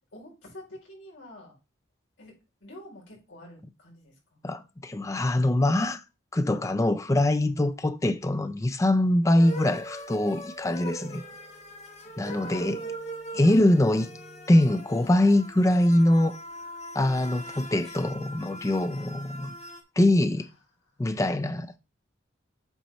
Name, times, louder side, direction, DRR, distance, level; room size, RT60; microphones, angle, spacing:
voice 1, 0.1-1.6 2.2-2.3 2.6-4.5 12.4-12.9 13.3-14.1 20.4-20.5 21.4-21.5, left 1 dB, 70° left, 4.3 m, -48 dB
voice 2, 4.4-6.0 6.3-11.2 12.2-12.8 13.3-14.1 14.5-16.4 16.9-19.6 20.0-20.5 21.0-21.8, left 1 dB, 15° left, 0.4 m, -23 dB
sound 1, 9.4-19.8, right 1 dB, 35° left, 1.4 m, -41 dB
8.0 x 4.3 x 4.0 m
head